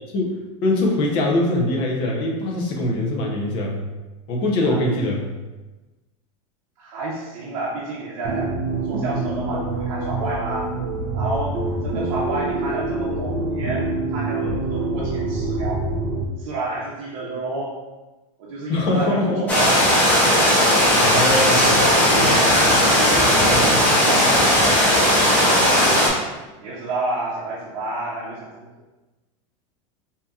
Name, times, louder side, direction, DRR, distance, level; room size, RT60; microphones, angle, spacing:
voice 1, 0.1-3.8 4.3-5.2 18.7-19.5 21.0-21.7, left 1 dB, 35° left, -1 dB, 0.7 m, -22 dB
voice 2, 4.6-4.9 6.8-10.7 11.1-15.8 16.4-17.7 18.4-19.9 21.1-25.7 26.6-28.7, right 2 dB, 60° right, -6 dB, 0.7 m, -30 dB
sound 1, 8.2-16.2, right 2 dB, 35° right, 0.4 m, -26 dB
sound 2, 19.5-26.1, equal, 10° left, 0.9 m, -16 dB
4.9 x 2.8 x 2.3 m, 1.1 s
supercardioid pair, 175°, 17 cm